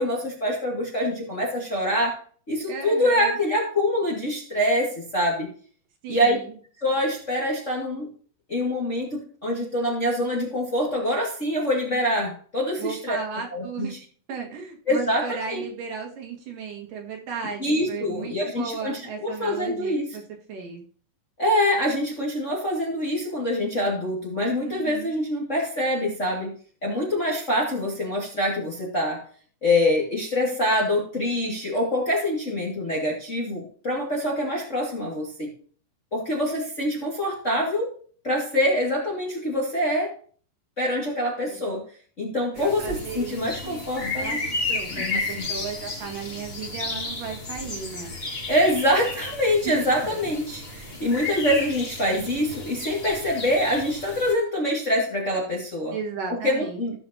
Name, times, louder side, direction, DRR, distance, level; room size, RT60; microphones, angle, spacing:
voice 1, 0.0-2.2 2.5-5.5 6.1-6.4 6.8-8.1 8.5-13.2 13.5-14.0 14.9-15.6 17.6-20.1 21.4-26.5 26.8-29.2 29.6-35.5 36.1-37.9 38.2-40.1 40.8-41.8 42.2-44.4 44.9-45.5 48.5-56.0 56.3-56.9, left 1 dB, 25° left, -2 dB, 1.9 m, -25 dB
voice 2, 2.7-3.4 6.0-6.5 12.8-13.9 14.3-20.2 20.5-20.8 24.6-25.1 41.5-41.6 42.6-43.8 44.2-44.4 44.7-48.1 49.6-49.8 55.9-56.8, right 6 dB, 70° right, 1 dB, 3.2 m, -35 dB
sound 1, 42.6-54.3, left 3 dB, 70° left, 0.5 m, -33 dB
16.5 x 6.0 x 2.8 m, 0.44 s
omnidirectional pair, 4.0 m